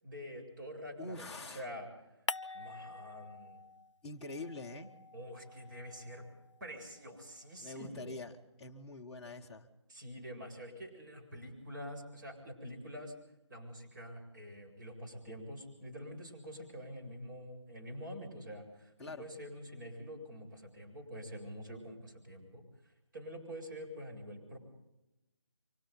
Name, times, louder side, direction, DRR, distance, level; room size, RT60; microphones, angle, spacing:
voice 1, 0.0-1.9 2.5-3.6 5.1-6.3 6.6-8.1 9.9-13.1 13.5-22.6 23.1-24.6, equal, 40° right, 2 dB, 7.7 m, -46 dB
voice 2, 1.0-1.7 4.0-4.9 7.6-8.3 8.6-9.7 19.0-19.3, left 3 dB, 5° left, -5 dB, 1.1 m, -44 dB
sound 1, 2.3-4.0 4.3-6.7, left 3 dB, 90° left, 0.7 m, -45 dB
29.5 x 25.0 x 4.1 m, 0.95 s
figure-of-eight pair, 160°, 15 cm